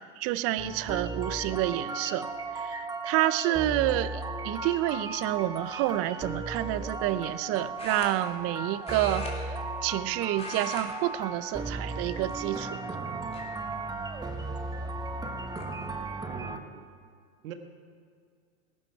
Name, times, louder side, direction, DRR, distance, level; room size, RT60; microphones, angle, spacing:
voice 1, 0.0-2.3 2.5-12.8, right 14 dB, 35° right, 16 dB, 0.6 m, -29 dB
sound 1, 0.6-16.6, right 3 dB, 10° right, 1.1 m, -36 dB
sound 2, 5.8-6.1 7.8-8.6 8.8-10.0 10.3-10.9 11.2-11.4 12.2-12.8 13.3-13.4 14.9-15.0 15.3-15.7, left 2 dB, 15° left, 3.2 m, -41 dB
voice 2, 16.3-16.9 17.4-17.5, right 9 dB, 65° right, 7 dB, 1.8 m, -43 dB
19.5 x 12.0 x 4.7 m, 2.1 s
hypercardioid pair, 100°, 42 cm